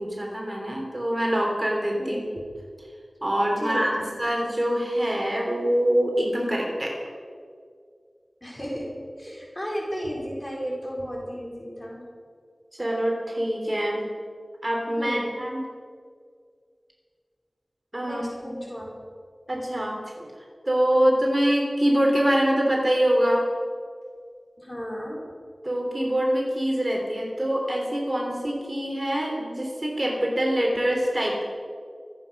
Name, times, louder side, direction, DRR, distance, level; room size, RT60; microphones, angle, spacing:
voice 1, 0.0-2.2 3.2-7.0 12.8-14.0 14.6-15.6 17.9-18.6 19.5-20.3 20.6-23.5 25.6-31.4, equal, 30° right, -1 dB, 3.4 m, -24 dB
voice 2, 3.6-4.1 8.4-8.9 9.2-12.0 15.0-15.3 18.0-18.9 24.6-25.2, equal, 25° left, -3 dB, 4.9 m, -34 dB
25.5 x 8.9 x 5.5 m, 2.1 s
wide cardioid pair, 60°, 0 cm